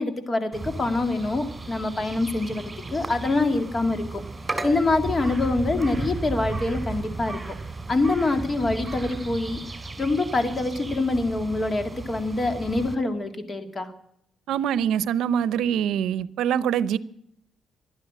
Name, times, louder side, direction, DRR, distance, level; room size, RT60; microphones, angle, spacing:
voice 1, 0.0-2.6 2.9-4.2 4.6-7.6 7.9-9.6 10.0-13.9, left 2 dB, 30° left, 2.1 m, -25 dB
sound 1, 0.5-12.9, right 3 dB, 20° right, 3.0 m, -35 dB
voice 2, 14.5-17.0, right 9 dB, 80° right, 0.7 m, -24 dB
12.5 x 11.5 x 8.5 m
cardioid pair, 90°, 0 cm